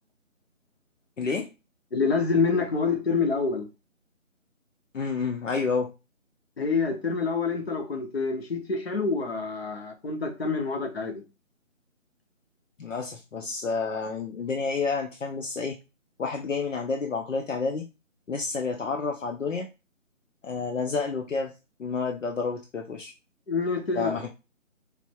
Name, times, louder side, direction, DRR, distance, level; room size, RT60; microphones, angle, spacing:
voice 1, 1.2-1.5 4.9-5.9 12.8-15.8 16.2-17.9 18.3-19.7 20.4-21.5 21.8-23.1 24.0-24.3, left 4 dB, 65° left, 0.8 m, -29 dB
voice 2, 1.9-3.7 6.6-11.2 23.5-24.2, left 4 dB, 50° left, 1.1 m, -27 dB
4.7 x 3.4 x 2.3 m
figure-of-eight pair, 170°, 41 cm